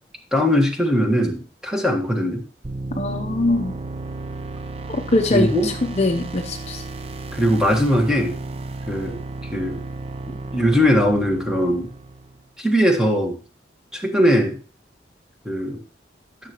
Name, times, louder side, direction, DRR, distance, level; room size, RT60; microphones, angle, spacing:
voice 1, 0.3-2.4 5.3-5.7 7.3-8.3 8.9-9.2 9.5-9.8 10.5-11.9 12.6-13.4 13.9-14.6 15.4-15.8, equal, 5° right, 1.5 m, -20 dB
sound 1, 2.6-12.5, right 2 dB, 35° right, 0.5 m, -33 dB
voice 2, 3.0-3.7 4.9-6.8, left 2 dB, 40° left, 0.7 m, -22 dB
13.0 x 6.6 x 3.0 m
head